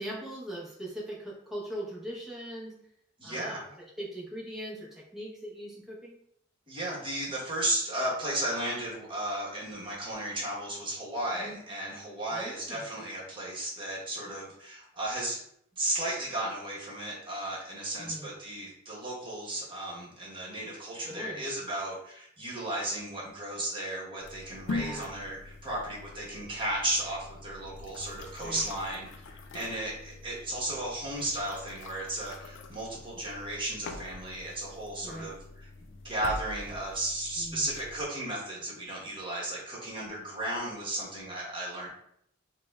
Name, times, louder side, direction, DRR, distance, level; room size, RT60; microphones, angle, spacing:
voice 1, 0.0-2.8 3.2-6.2 11.4-11.6 12.3-12.9 18.0-18.3 21.0-21.4 24.7-25.1 28.4-28.7 35.0-35.3 37.4-37.7, equal, ahead, -5 dB, 0.8 m, -40 dB
voice 2, 3.2-3.6 6.7-15.4 15.8-41.9, right 1 dB, 25° right, -5 dB, 1.1 m, -34 dB
sound 1, 24.2-38.0, left 2 dB, 60° left, 0.3 m, -44 dB
4.9 x 2.2 x 2.3 m, 0.71 s
head